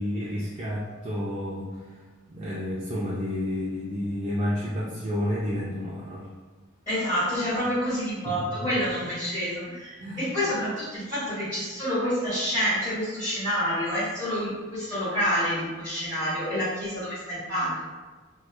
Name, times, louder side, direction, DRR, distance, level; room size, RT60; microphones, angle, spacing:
voice 1, 0.0-2.0 2.3-6.3 8.2-8.8 10.0-10.2, left 1 dB, 30° right, -7 dB, 0.3 m, -30 dB
voice 2, 6.9-17.8, equal, 20° left, -16 dB, 1.0 m, -28 dB
2.9 x 2.2 x 2.2 m, 1.3 s
head